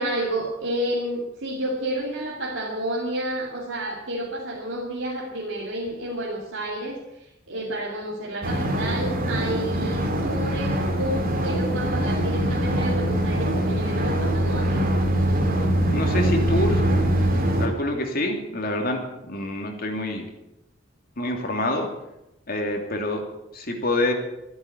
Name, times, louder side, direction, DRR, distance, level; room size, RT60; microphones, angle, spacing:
voice 1, 0.0-7.0 7.5-14.8, right 1 dB, 75° right, -3 dB, 2.6 m, -30 dB
sound 1, 8.4-17.7, right 1 dB, 45° right, 2.6 m, -23 dB
voice 2, 15.9-16.8 17.6-20.3 21.2-21.9 22.5-23.2 23.5-24.1, left 1 dB, 50° left, 3 dB, 2.9 m, -26 dB
14.0 x 11.0 x 8.5 m, 0.88 s
head